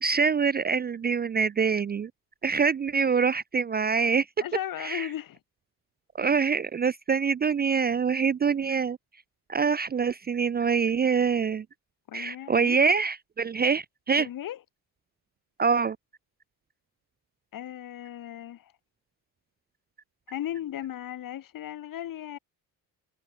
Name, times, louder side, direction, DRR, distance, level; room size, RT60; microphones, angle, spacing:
voice 1, 0.0-2.1 2.4-4.3 4.8-5.1 6.2-9.0 9.5-11.7 12.1-14.3 15.6-16.0, right 5 dB, 25° right, 0.5 m, -25 dB
voice 2, 4.4-5.4 12.1-12.8 14.2-14.6 17.5-18.7 20.3-22.4, left 11 dB, 55° left, 1.7 m, -36 dB
cardioid pair, 95°, 39 cm